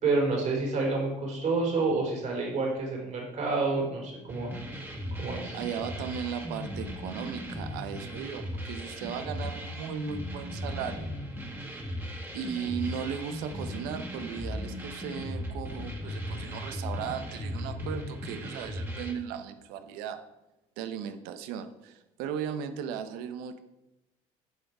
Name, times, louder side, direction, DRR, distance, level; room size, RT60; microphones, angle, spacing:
voice 1, 0.0-4.5 5.2-5.6, right 3 dB, 50° right, 0 dB, 4.0 m, -28 dB
sound 1, 4.3-19.1, equal, 15° right, 1.9 m, -37 dB
voice 2, 5.5-11.1 12.3-20.2 20.8-23.6, right 8 dB, 80° right, 10 dB, 0.9 m, -37 dB
9.8 x 6.5 x 4.8 m, 0.95 s
supercardioid pair, 85°, 16 cm